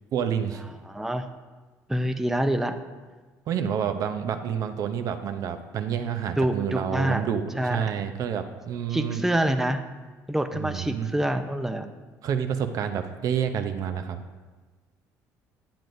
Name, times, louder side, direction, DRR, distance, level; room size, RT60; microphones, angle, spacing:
voice 1, 0.1-0.6 3.5-9.2 10.5-11.1 12.2-14.2, right 8 dB, 60° right, 8 dB, 0.7 m, -29 dB
voice 2, 0.9-1.2 1.9-2.7 6.4-7.2 7.6-7.9 8.9-9.8 10.3-11.9, right 1 dB, 5° right, 7 dB, 0.5 m, -26 dB
10.5 x 7.6 x 2.6 m, 1.3 s
supercardioid pair, 90°, 7 cm